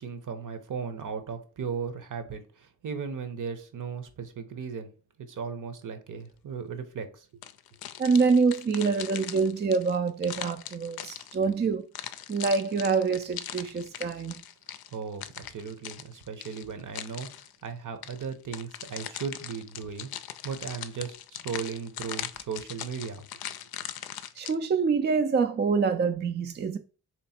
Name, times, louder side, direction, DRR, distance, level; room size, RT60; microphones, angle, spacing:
voice 1, 0.0-4.9 5.2-7.4 14.9-20.1 20.4-23.3, right 6 dB, 55° right, 0.9 m, -37 dB
sound 1, 7.4-11.6 11.9-17.6 18.0-24.5, left 11 dB, 70° left, 0.5 m, -40 dB
voice 2, 8.0-11.8 12.3-14.3 24.4-26.8, right 5 dB, 30° right, 0.4 m, -26 dB
3.2 x 3.0 x 4.2 m
cardioid pair, 55°, 38 cm